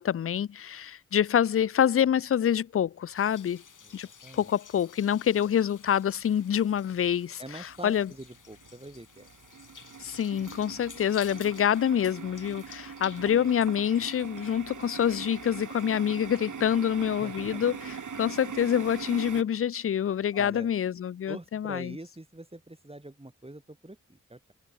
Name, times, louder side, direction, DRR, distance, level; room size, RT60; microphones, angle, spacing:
voice 1, 0.0-3.6 3.9-4.1 4.3-8.1 10.0-22.0, left 9 dB, 45° left, 0.5 m, -26 dB
sound 1, 3.1-16.3, left 7 dB, 75° left, 2.0 m, -51 dB
voice 2, 3.9-4.5 7.4-9.3 17.2-17.5 20.3-20.7 21.3-24.5, right 1 dB, 20° right, 3.5 m, -44 dB
sound 2, 6.3-7.1 7.5-19.4, right 6 dB, 70° right, 2.2 m, -42 dB
cardioid pair, 45°, 31 cm